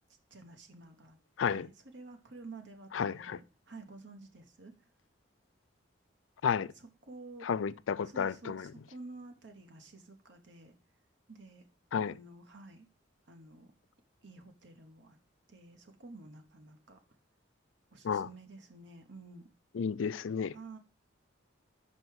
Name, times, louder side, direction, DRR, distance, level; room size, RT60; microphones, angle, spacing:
voice 1, 0.3-1.2 1.5-4.7 6.5-7.5 8.0-10.7 11.3-11.6 12.0-12.9 13.3-13.7 14.2-15.2 15.5-17.0 17.9-19.5 20.5-20.8, right 3 dB, 65° right, 1.0 m, -51 dB
voice 2, 2.9-3.4 6.4-6.7 7.4-8.7 11.9-12.1 18.0-18.3 19.7-20.5, left 6 dB, 80° left, 0.4 m, -32 dB
5.8 x 5.3 x 6.2 m
head